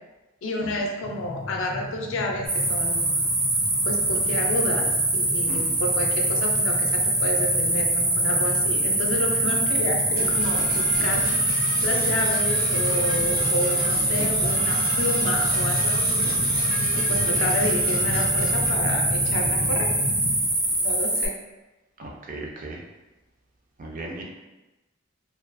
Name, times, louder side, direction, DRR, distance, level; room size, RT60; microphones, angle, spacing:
voice 1, 0.4-3.2 3.8-4.9 5.1-11.3 11.8-16.3 16.9-19.9 20.8-21.3, left 1 dB, 85° left, 1 dB, 0.4 m, -30 dB
sound 1, 1.0-20.4, left 1 dB, 20° left, 0.4 m, -34 dB
sound 2, 2.5-21.3, right 1 dB, 60° right, 1.1 m, -24 dB
Percussion / Brass instrument, 10.2-18.7, equal, 85° right, 0.8 m, -35 dB
voice 2, 22.0-22.8 23.8-24.2, right 2 dB, 40° right, 0 dB, 0.4 m, -36 dB
2.3 x 2.2 x 2.5 m, 1.0 s
head